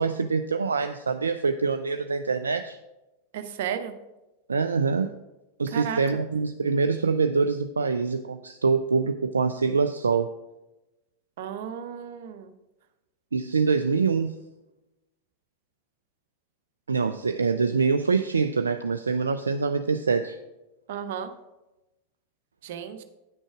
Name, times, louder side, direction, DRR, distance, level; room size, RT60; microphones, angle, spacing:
voice 1, 0.0-2.8 4.5-5.1 5.6-10.3 13.3-14.3 16.9-20.4, right 5 dB, 75° right, 8 dB, 0.3 m, -25 dB
voice 2, 3.3-3.9 5.7-6.0 11.4-12.5 20.9-21.3 22.6-23.0, right 8 dB, 55° right, 9 dB, 0.8 m, -33 dB
9.6 x 6.3 x 4.8 m, 1.0 s
figure-of-eight pair, 90°, 0 cm